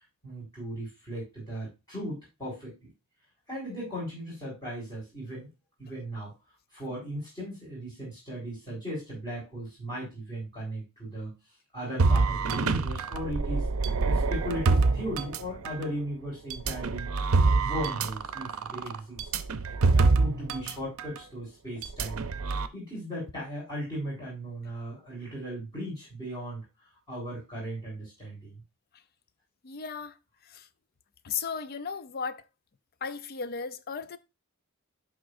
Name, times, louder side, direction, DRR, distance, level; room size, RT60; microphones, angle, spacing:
voice 1, 0.2-2.9 3.5-5.5 5.8-6.3 6.7-11.3 11.7-17.1 17.4-19.3 19.9-22.2 22.7-26.6 27.1-28.6, equal, 20° left, 3.8 m, -37 dB
sound 1, 12.0-15.9 16.5-20.7 21.0-21.2 21.8-22.7, right 3 dB, 75° right, 0.6 m, -26 dB
voice 2, 29.6-30.2 30.4-30.7 31.2-32.5 33.0-34.2, left 5 dB, 45° left, 0.5 m, -35 dB
11.0 x 3.7 x 2.5 m
head